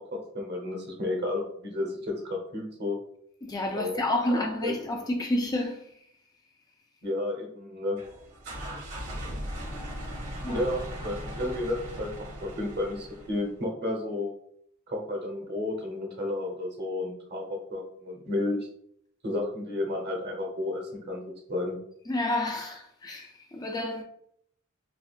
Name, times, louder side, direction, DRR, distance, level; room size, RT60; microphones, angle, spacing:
voice 1, 0.3-3.0 3.7-4.0 4.3-4.8 7.0-8.0 10.5-12.1 12.4-14.3 14.9-18.7 19.2-21.2 21.5-21.8, left 2 dB, 50° right, 0.9 m, -32 dB
voice 2, 3.4-5.9 10.4-10.6 22.1-24.0, left 1 dB, 20° left, 0.3 m, -30 dB
sound 1, 8.0-13.5, equal, 80° right, 1.5 m, -38 dB
3.5 x 2.3 x 2.4 m
head